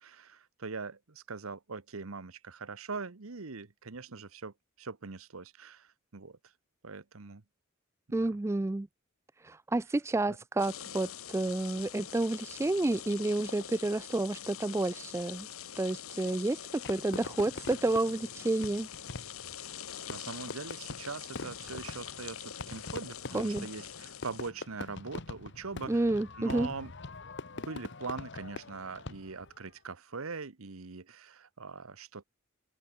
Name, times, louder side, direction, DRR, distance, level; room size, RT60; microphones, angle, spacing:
voice 1, 0.0-6.4 6.8-7.4 8.1-8.3 10.3-10.4 20.1-26.1 26.4-26.9 27.5-32.2, right 4 dB, 80° right, 1.1 m, -42 dB
voice 2, 8.1-8.9 9.4-15.5 15.8-18.9 23.3-23.7 25.9-26.7, right 2 dB, 15° right, 0.3 m, -30 dB
sound 1, 10.6-24.5, left 9 dB, 85° left, 1.2 m, -44 dB
Fireworks, 16.8-29.6, left 3 dB, 55° left, 1.2 m, -44 dB
open air
head